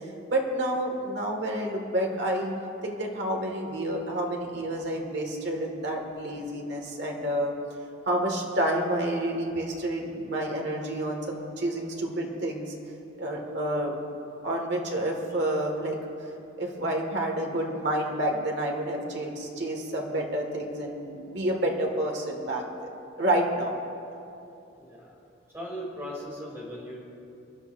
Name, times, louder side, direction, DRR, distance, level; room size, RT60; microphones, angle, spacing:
voice 1, 0.0-2.5 2.8-7.5 8.1-12.7 13.2-13.9 14.4-16.0 16.6-22.9 23.2-23.7, right 1 dB, 60° right, 1 dB, 2.0 m, -29 dB
voice 2, 24.8-25.2 25.5-27.0, equal, 15° right, -4 dB, 3.1 m, -38 dB
27.0 x 11.0 x 2.7 m, 2.7 s
head